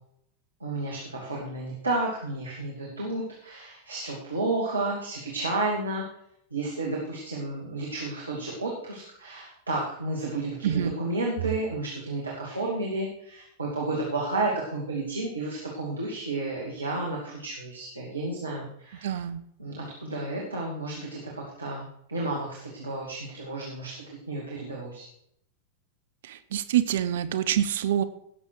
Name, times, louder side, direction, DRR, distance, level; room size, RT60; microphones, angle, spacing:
voice 1, 0.6-6.0 6.5-19.1 19.6-25.1, right 2 dB, 80° right, -3 dB, 2.2 m, -32 dB
voice 2, 19.0-19.4 26.2-28.0, right 10 dB, 60° right, 11 dB, 0.7 m, -26 dB
17.0 x 7.0 x 4.7 m, 0.74 s
figure-of-eight pair, 90°, 0 cm